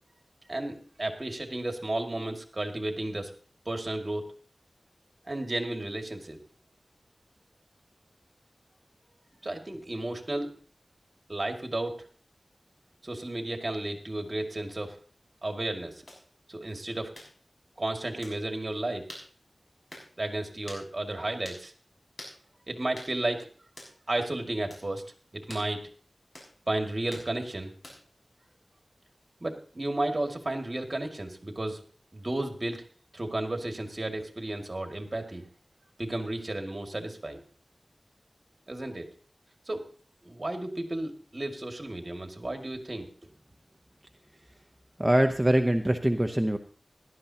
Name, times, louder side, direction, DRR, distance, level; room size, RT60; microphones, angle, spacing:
voice 1, 0.5-3.3 3.7-4.2 5.3-6.4 9.4-10.5 11.3-12.0 13.0-15.0 15.4-16.0 16.5-17.1 17.8-19.0 20.2-21.7 22.7-23.5 24.1-25.0 25.3-25.8 26.7-27.7 29.4-31.8 32.1-32.8 33.1-35.4 36.0-37.4 38.7-39.1 39.7-39.8 40.2-43.1, right 1 dB, 40° right, 4 dB, 2.3 m, -33 dB
sound 1, 16.1-16.2 17.1-17.3 18.2-18.4 19.1-19.3 19.9-20.1 20.7-20.9 21.4-21.6 22.2-22.4 23.0-23.1 23.8-23.9 24.7-24.9 25.5-25.7 26.3-26.5 27.1-27.3 27.8-28.1, left 1 dB, 60° left, 6.2 m, -45 dB
voice 2, 45.0-46.6, right 1 dB, 10° right, 4 dB, 0.9 m, -23 dB
17.0 x 12.0 x 2.9 m, 0.42 s
wide cardioid pair, 55°, 0 cm